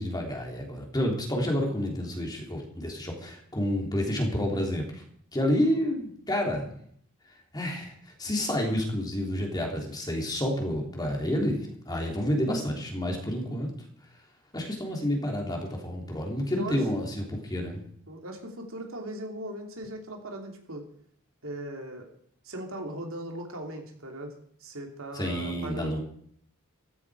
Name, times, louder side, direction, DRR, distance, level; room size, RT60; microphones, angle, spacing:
voice 1, 0.0-5.0 5.3-6.7 7.5-7.9 8.2-13.7 14.5-17.8 25.1-26.0, left 1 dB, 20° left, 0 dB, 3.2 m, -29 dB
voice 2, 5.6-5.9 13.4-13.7 16.5-16.8 18.1-20.8 21.4-22.0 22.4-24.3 24.6-26.0, right 1 dB, 65° right, 2 dB, 3.1 m, -39 dB
15.0 x 15.0 x 4.9 m, 0.62 s
head